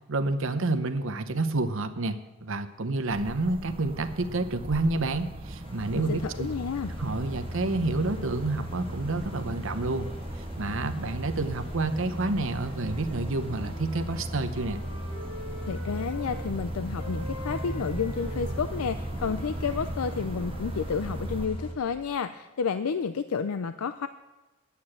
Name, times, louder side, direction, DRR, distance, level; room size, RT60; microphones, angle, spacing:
voice 1, 0.1-6.5 7.0-10.1 10.4-14.8, right 2 dB, 60° right, 9 dB, 0.9 m, -29 dB
sound 1, 3.1-21.5, right 1 dB, 25° right, 0.7 m, -39 dB
sound 2, 5.6-21.7, equal, 25° left, 1.4 m, -38 dB
voice 2, 5.9-6.9 15.7-24.1, left 6 dB, 80° left, 11 dB, 0.5 m, -31 dB
sound 3, 12.3-16.4 17.0-21.2, equal, 55° left, 5.2 m, -45 dB
9.7 x 8.4 x 8.6 m, 1.1 s
head